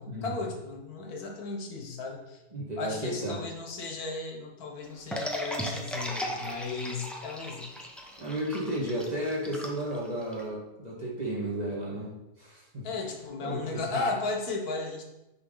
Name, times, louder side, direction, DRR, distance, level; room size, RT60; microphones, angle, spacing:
voice 1, 0.0-2.4 2.8-7.7 12.8-15.0, left 3 dB, 70° left, 2 dB, 1.5 m, -35 dB
voice 2, 2.5-3.4 8.2-12.9 13.4-14.0, right 1 dB, 25° right, -5 dB, 1.6 m, -33 dB
sound 1, 5.1-10.4, equal, ahead, 0.4 m, -36 dB
9.1 x 3.7 x 3.8 m, 0.97 s
omnidirectional pair, 1.7 m